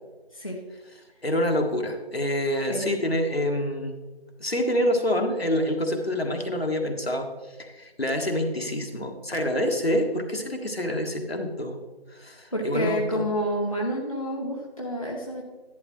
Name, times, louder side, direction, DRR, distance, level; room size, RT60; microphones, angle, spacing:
voice 1, 0.3-0.6 2.7-2.9 12.5-15.4, equal, 35° left, -2 dB, 0.8 m, -29 dB
voice 2, 1.2-3.9 4.4-11.8 12.1-13.2, left 1 dB, 70° left, 3 dB, 1.5 m, -27 dB
11.0 x 8.8 x 3.1 m, 1.2 s
figure-of-eight pair, 170°, 32 cm